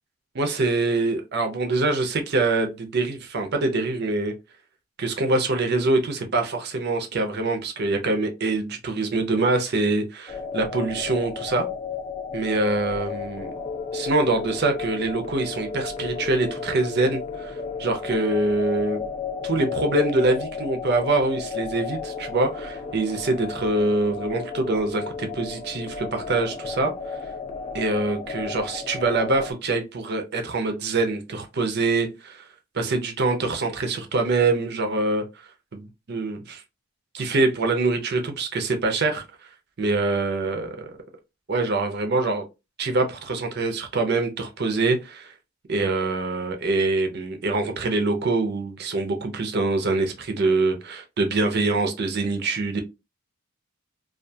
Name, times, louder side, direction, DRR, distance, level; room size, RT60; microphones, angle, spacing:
voice 1, 0.3-4.3 5.0-11.7 12.3-13.5 13.9-17.5 17.8-19.0 19.4-27.2 27.7-32.5 32.7-35.2 35.7-36.6 37.1-39.2 39.8-40.9 41.5-42.4 42.8-45.3 45.7-52.8, right 2 dB, 50° right, 0.5 m, -24 dB
sound 1, 10.3-29.5, left 5 dB, 30° left, 0.3 m, -33 dB
2.4 x 2.3 x 2.6 m
head